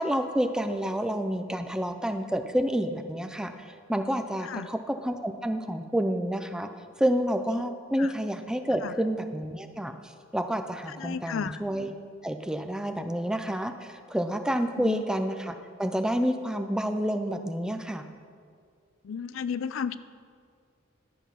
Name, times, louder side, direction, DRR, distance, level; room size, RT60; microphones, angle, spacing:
voice 1, 0.0-6.7 7.0-11.9 12.2-18.0, equal, 5° right, 6 dB, 0.5 m, -29 dB
voice 2, 10.9-11.6 14.8-15.0 19.0-20.0, left 6 dB, 75° left, 15 dB, 0.4 m, -33 dB
11.5 x 8.0 x 5.8 m, 2.2 s
head